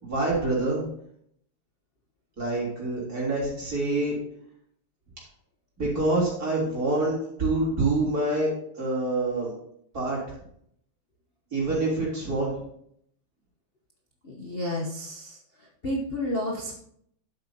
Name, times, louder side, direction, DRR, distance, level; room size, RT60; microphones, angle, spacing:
voice 1, 0.0-0.8 2.4-4.2 5.8-9.5 9.9-10.2 11.5-12.6, right 2 dB, 40° right, -5 dB, 4.1 m, -26 dB
voice 2, 14.2-15.4 15.8-16.7, left 1 dB, 40° left, -1 dB, 0.9 m, -30 dB
11.5 x 8.0 x 2.9 m, 0.69 s
omnidirectional pair, 2.4 m